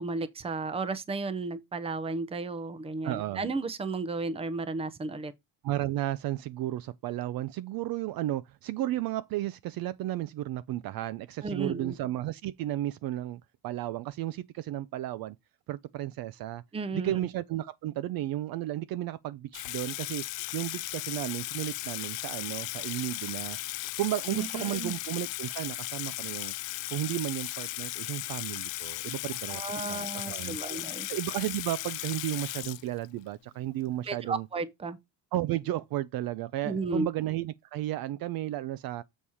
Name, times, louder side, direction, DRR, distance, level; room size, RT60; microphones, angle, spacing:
voice 1, 0.0-5.3 11.4-11.9 16.7-17.2 24.3-25.0 29.5-31.1 34.1-35.0 36.6-37.1, right 3 dB, 15° right, 0.6 m, -33 dB
voice 2, 3.0-3.4 5.6-15.4 15.7-16.6 16.9-20.2 20.5-23.6 24.0-26.5 26.9-30.8 31.1-34.5 35.3-39.0, right 14 dB, 55° right, 0.5 m, -33 dB
Water tap faucet / Sink (filling or washing), 19.5-33.3, left 20 dB, 85° left, 0.5 m, -36 dB
7.2 x 4.3 x 4.8 m
cardioid pair, 155°, 43 cm